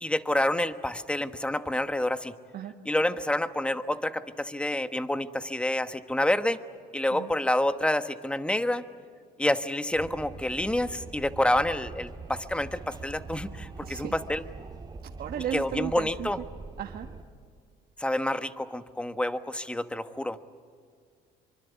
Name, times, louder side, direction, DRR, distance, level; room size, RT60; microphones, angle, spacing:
voice 1, 0.0-2.3 2.8-6.6 6.9-8.8 9.4-14.4 15.5-16.4 18.0-20.4, left 1 dB, 5° left, 11 dB, 1.2 m, -28 dB
Wind, 9.9-17.2, right 4 dB, 25° right, 2.5 m, -43 dB
voice 2, 13.8-14.1 15.2-16.3 16.8-17.1, right 10 dB, 60° right, 4 dB, 1.4 m, -34 dB
26.0 x 24.5 x 8.2 m, 2.1 s
cardioid pair, 110°, 17 cm